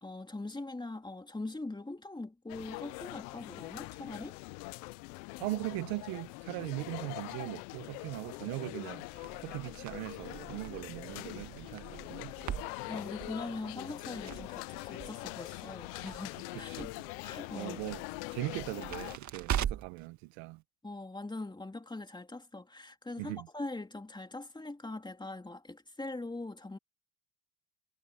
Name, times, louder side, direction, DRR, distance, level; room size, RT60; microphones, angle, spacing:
voice 1, 0.0-4.4 12.6-16.9 17.2-17.9 20.8-26.8, left 2 dB, 10° left, 3.0 m, -42 dB
sound 1, 2.5-19.2, left 24 dB, 85° left, 1.0 m, -43 dB
voice 2, 5.4-9.1 9.4-12.3 16.5-16.9 17.5-18.0 18.3-20.6 23.2-23.5, right 21 dB, 75° right, 1.6 m, -39 dB
Crackle, 9.1-20.1, right 9 dB, 40° right, 1.7 m, -42 dB
supercardioid pair, 105°, 45 cm